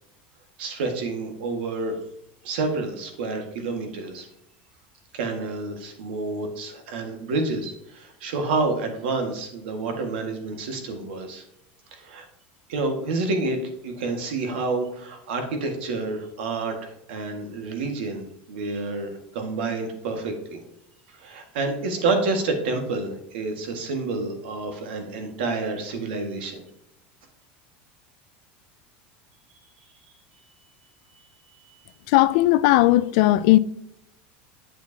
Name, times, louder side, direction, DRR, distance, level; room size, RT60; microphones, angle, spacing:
voice 1, 0.6-2.0 2.4-4.3 5.1-11.4 11.9-12.3 12.7-18.2 18.5-20.6 21.1-26.6, right 3 dB, 80° right, 1.8 m, -29 dB
voice 2, 32.1-33.6, left 16 dB, 50° left, 0.3 m, -17 dB
8.1 x 7.4 x 2.8 m
supercardioid pair, 180°, 5 cm